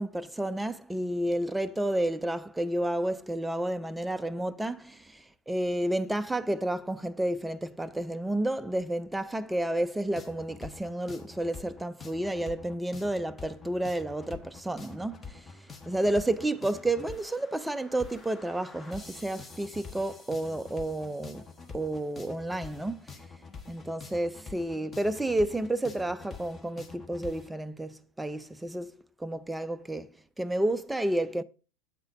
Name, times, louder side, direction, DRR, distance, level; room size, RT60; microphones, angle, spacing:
voice 1, 0.0-15.4 15.9-21.4 21.7-23.0 23.7-30.1 30.4-31.4, right 1 dB, 5° right, 0.4 m, -31 dB
sound 1, 10.1-27.5, left 4 dB, 15° left, 0.8 m, -46 dB
8.0 x 4.0 x 5.1 m
figure-of-eight pair, 90°, 0 cm